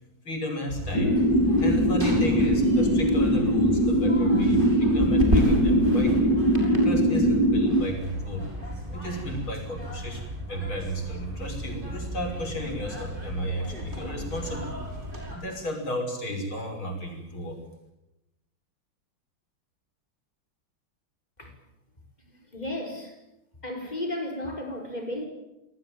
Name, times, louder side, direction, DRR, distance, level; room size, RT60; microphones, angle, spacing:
voice 1, 0.2-1.2 1.6-6.3 6.8-8.5 8.9-14.8 15.3-17.6, equal, 75° left, 6.7 m, -33 dB
sound 1, 0.7-15.4, equal, 25° right, 6.0 m, -33 dB
sound 2, 0.9-7.8, equal, 50° left, 2.6 m, -21 dB
voice 2, 22.3-23.1 23.6-25.3, left 1 dB, 20° left, 5.7 m, -34 dB
27.0 x 19.0 x 8.9 m
omnidirectional pair, 2.3 m